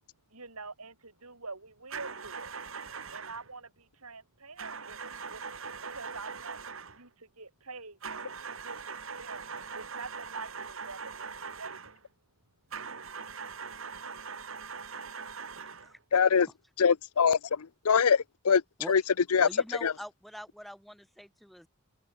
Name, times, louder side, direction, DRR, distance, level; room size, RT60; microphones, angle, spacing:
voice 1, 0.3-2.5 3.1-5.4 5.8-6.6 6.9-8.3 8.6-11.9, right 4 dB, 85° right, 7.4 m, -46 dB
sound 1, 1.9-3.5 4.6-7.0 8.0-12.0 12.7-15.9, right 5 dB, 65° right, 2.5 m, -41 dB
voice 2, 16.1-16.5 16.8-18.6 18.9-19.0 19.3-19.5 19.8-19.9, left 6 dB, 85° left, 0.6 m, -23 dB
voice 3, 19.4-21.7, equal, ahead, 3.2 m, -44 dB
open air
head